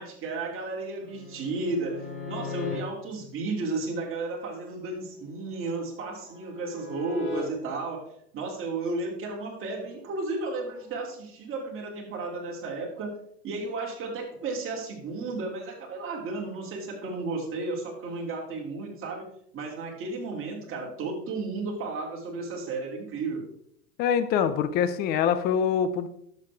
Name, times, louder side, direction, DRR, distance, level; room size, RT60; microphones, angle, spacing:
voice 1, 0.0-8.1 8.3-13.1 13.4-19.3 19.5-23.4, right 3 dB, 25° right, -2 dB, 2.9 m, -33 dB
sound 1, 1.0-2.8 5.5-7.4 10.9-11.1, left 5 dB, 75° left, 3.9 m, -38 dB
voice 2, 24.0-26.1, left 8 dB, 20° left, 12 dB, 0.5 m, -24 dB
11.0 x 7.1 x 3.5 m, 0.70 s
hypercardioid pair, 115°, 49 cm